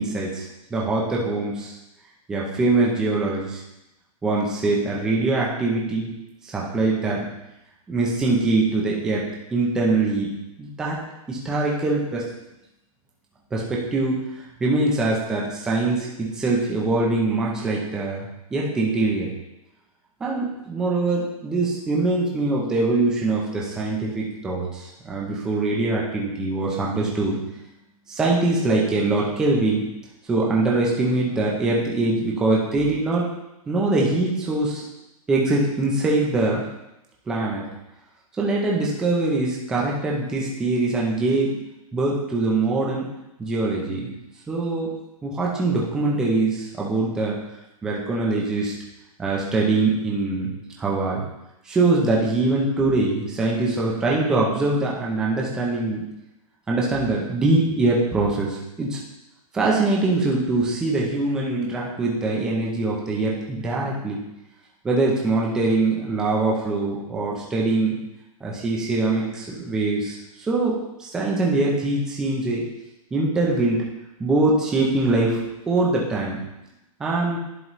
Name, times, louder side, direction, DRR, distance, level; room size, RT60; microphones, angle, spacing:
voice 1, 0.0-1.8 2.3-3.6 4.2-6.1 6.4-7.3 7.9-9.2 9.5-10.3 10.6-11.0 11.3-12.3 13.5-14.2 14.6-19.3 20.2-27.4 28.1-29.9 30.3-33.3 33.7-34.8 35.3-36.6 37.3-37.6 38.4-41.6 41.9-43.1 43.4-44.1 44.5-44.9 45.2-47.4 47.8-48.7 49.2-50.5 50.8-51.3 51.7-56.0 56.7-59.0 59.5-64.2 64.8-68.0 68.4-72.6 73.1-73.9 74.2-76.4 77.0-77.4, right 2 dB, 5° right, -4 dB, 0.4 m, -23 dB
11.0 x 4.0 x 3.0 m, 0.91 s
hypercardioid pair, 180°, 19 cm